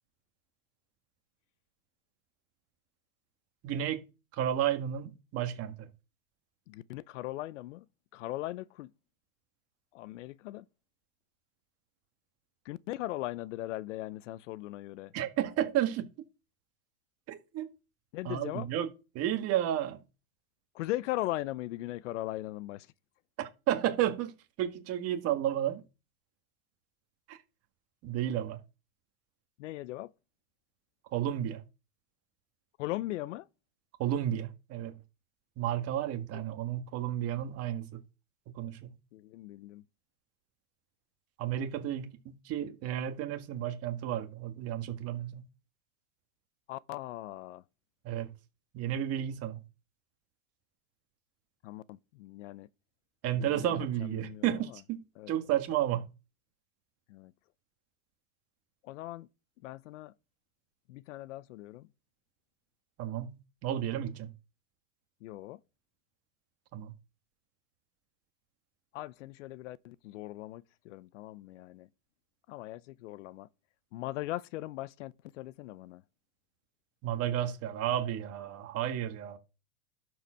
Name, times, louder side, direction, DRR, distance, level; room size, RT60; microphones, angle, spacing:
voice 1, 3.6-4.0 4.3-5.9 15.1-16.0 17.3-17.7 18.2-18.9 19.1-20.0 23.4-25.8 27.3-27.4 28.0-28.6 31.1-31.6 34.0-34.9 35.6-38.0 38.5-39.0 41.4-45.4 48.0-48.3 48.7-49.6 53.2-56.1 63.0-64.3 66.7-66.9 77.0-79.4, right 11 dB, 35° right, 1.7 m, -32 dB
voice 2, 6.7-7.8 8.1-8.9 9.9-10.6 12.7-15.1 18.1-18.7 20.7-22.9 29.6-30.1 32.8-33.5 36.3-36.4 39.1-39.8 46.7-47.6 51.6-52.7 53.4-54.5 55.2-55.3 57.1-57.3 58.8-59.3 59.6-60.1 60.9-61.9 65.2-65.6 68.9-71.9 72.5-73.5 73.9-76.0, left 16 dB, 60° left, 0.6 m, -39 dB
12.0 x 4.8 x 6.2 m
supercardioid pair, 135°, 41 cm